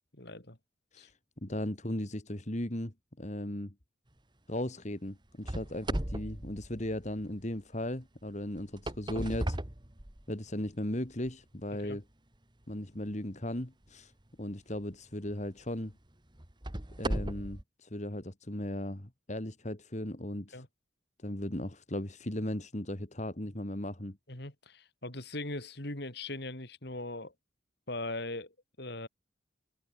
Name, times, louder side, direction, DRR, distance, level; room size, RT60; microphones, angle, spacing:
voice 1, 0.2-0.6 1.0-1.1 11.7-12.0 20.5-20.7 24.3-27.3 27.9-28.5 28.8-29.1, left 2 dB, 55° left, 3.8 m, -40 dB
voice 2, 1.4-3.7 4.5-9.6 10.3-12.0 12.7-14.1 14.4-15.9 17.0-20.7 21.2-24.2, left 1 dB, 35° left, 2.3 m, -37 dB
sound 1, 5.4-7.4 8.6-10.5 11.2-11.3 12.0-12.1 14.7-14.9 15.4-15.5 16.4-17.6, right 1 dB, 25° right, 1.7 m, -36 dB
head